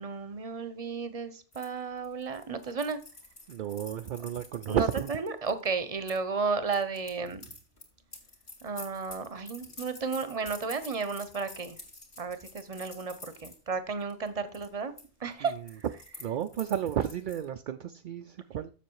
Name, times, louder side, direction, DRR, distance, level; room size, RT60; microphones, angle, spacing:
voice 1, 0.0-3.0 4.7-7.4 8.6-11.8 12.2-14.9 15.2-15.5, right 4 dB, 35° right, 0.9 m, -33 dB
sound 1, 1.5-6.2 6.7-13.6 14.0-14.3 14.5-15.1 15.3-17.4, left 2 dB, 45° left, 2.2 m, -49 dB
voice 2, 3.5-5.1 15.4-15.6 16.2-18.7, right 10 dB, 60° right, 0.5 m, -32 dB
7.3 x 6.9 x 4.7 m
omnidirectional pair, 1.2 m